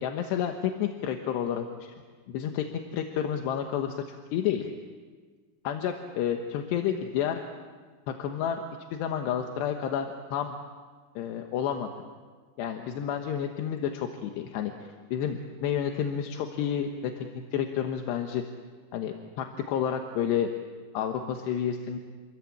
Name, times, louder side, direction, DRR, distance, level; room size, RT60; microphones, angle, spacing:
voice 1, 0.0-2.0 2.3-2.7 2.9-4.7 5.7-7.4 8.1-8.6 8.9-10.6 11.2-11.9 12.6-18.4 18.9-20.5 20.9-22.0, left 9 dB, 85° left, 4 dB, 3.4 m, -30 dB
29.5 x 21.5 x 8.8 m, 1.5 s
omnidirectional pair, 4.8 m